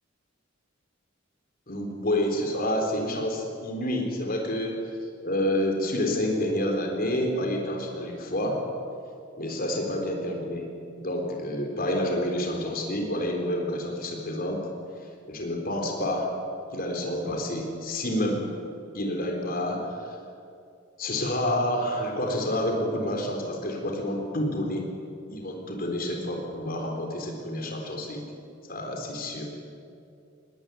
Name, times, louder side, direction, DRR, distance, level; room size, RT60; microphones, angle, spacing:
voice 1, 1.7-4.8 5.2-8.6 9.4-10.7 11.0-14.6 15.3-16.3 16.7-18.5 18.9-20.2 21.0-24.9 25.3-28.2 28.7-29.5, left 1 dB, 45° left, 2 dB, 4.0 m, -28 dB
20.5 x 19.0 x 9.4 m, 2.5 s
head